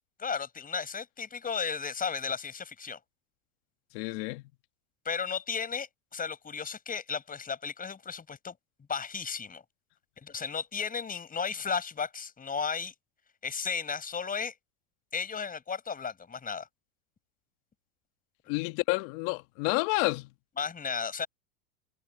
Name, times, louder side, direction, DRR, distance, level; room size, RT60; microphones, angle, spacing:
voice 1, 0.2-3.0 5.0-8.5 8.9-9.6 10.2-12.9 13.4-14.5 15.1-16.7 20.6-21.3, left 6 dB, 20° left, 4.8 m, -34 dB
voice 2, 3.9-4.4 18.5-20.3, left 25 dB, 55° left, 1.7 m, -29 dB
supercardioid pair, 125°, 45 cm